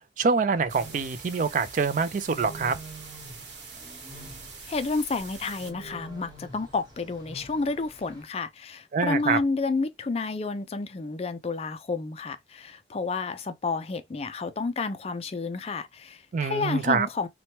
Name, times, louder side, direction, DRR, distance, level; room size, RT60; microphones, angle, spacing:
voice 1, 0.2-2.8 8.9-9.4 16.3-17.1, right 5 dB, 45° right, 0.3 m, -25 dB
sound 1, 0.5-8.2, right 2 dB, 20° right, 1.0 m, -47 dB
sound 2, 0.7-5.7, right 5 dB, 70° right, 1.0 m, -45 dB
voice 2, 4.7-17.3, left 3 dB, 35° left, 0.3 m, -30 dB
2.9 x 2.2 x 2.8 m
head